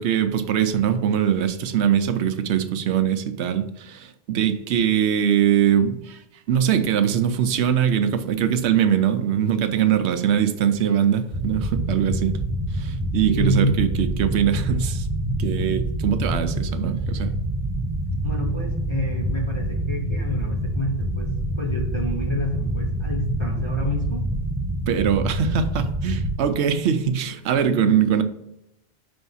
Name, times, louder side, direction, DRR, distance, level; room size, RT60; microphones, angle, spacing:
voice 1, 0.0-6.2 6.5-12.4 12.7-15.1 15.4-17.3 24.9-28.2, right 9 dB, 75° right, 9 dB, 0.9 m, -22 dB
sound 1, 11.3-26.3, right 1 dB, 25° right, 0.3 m, -26 dB
voice 2, 13.0-13.8 18.2-24.3 27.6-28.0, equal, 30° left, -2 dB, 0.8 m, -29 dB
5.4 x 3.5 x 5.5 m, 0.83 s
omnidirectional pair, 1.2 m